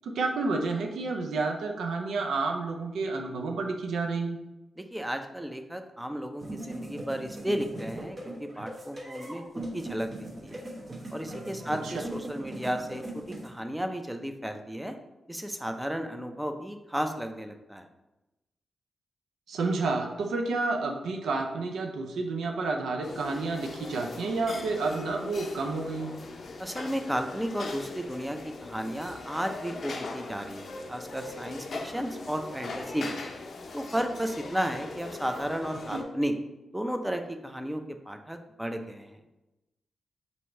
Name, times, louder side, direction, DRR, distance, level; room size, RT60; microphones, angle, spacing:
voice 1, 0.0-4.4 11.8-11.9 19.5-26.2 35.9-36.0, right 3 dB, 85° right, 3 dB, 0.4 m, -30 dB
voice 2, 4.8-10.1 10.4-10.7 11.1-15.0 15.3-17.9 26.6-33.2 33.7-36.3 36.7-39.2, equal, 10° right, 6 dB, 0.5 m, -33 dB
sound 1, 6.4-13.5, right 1 dB, 40° right, 0.9 m, -40 dB
sound 2, 23.0-36.0, left 3 dB, 65° left, 0.5 m, -41 dB
2.9 x 2.7 x 4.3 m, 0.98 s
cardioid pair, 50°, 0 cm